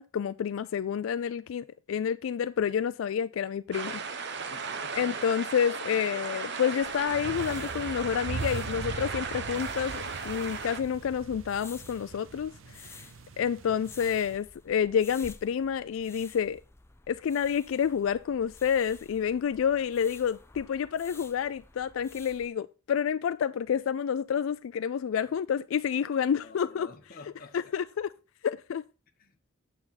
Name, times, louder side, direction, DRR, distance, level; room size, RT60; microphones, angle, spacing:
voice 1, 0.0-4.0 4.9-13.0 13.4-16.6 17.1-26.9 27.7-28.1 28.4-28.8, left 7 dB, 85° left, 0.3 m, -29 dB
sound 1, 3.7-10.8, right 5 dB, 60° right, 0.9 m, -36 dB
voice 2, 4.5-5.1 26.4-27.7 29.2-29.4, left 3 dB, 50° left, 1.1 m, -50 dB
sound 2, 6.8-22.5, left 3 dB, 15° left, 0.6 m, -53 dB
sound 3, 7.1-14.4, right 4 dB, 75° right, 0.5 m, -41 dB
8.8 x 7.2 x 4.1 m
head